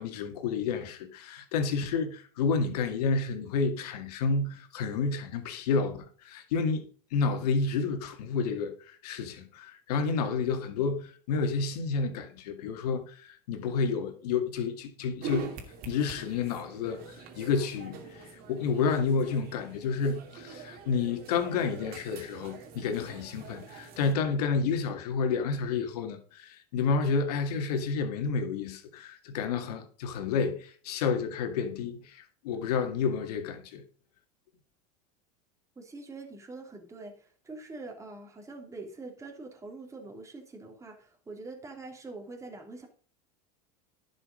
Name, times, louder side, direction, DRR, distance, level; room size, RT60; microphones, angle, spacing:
voice 1, 0.0-15.5 15.9-33.8, left 5 dB, 80° left, 2.3 m, -30 dB
sound 1, 15.2-24.1, right 5 dB, 50° right, 2.6 m, -44 dB
voice 2, 35.8-42.9, right 3 dB, 15° right, 3.0 m, -44 dB
11.0 x 6.5 x 5.3 m
supercardioid pair, 115°, 20 cm